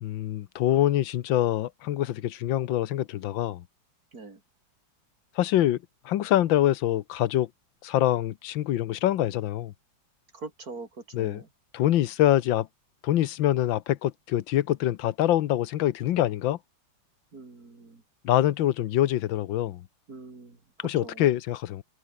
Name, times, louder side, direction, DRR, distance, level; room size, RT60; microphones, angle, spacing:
voice 1, 0.0-3.6 5.4-5.8 6.0-7.5 7.8-9.7 11.1-11.4 11.7-12.7 13.0-16.6 18.2-19.8 20.8-21.8, left 13 dB, 85° left, 1.6 m, -25 dB
voice 2, 10.3-10.9 11.2-11.5 17.3-18.0 20.1-21.3, right 3 dB, 50° right, 4.1 m, -43 dB
omnidirectional pair, 2.0 m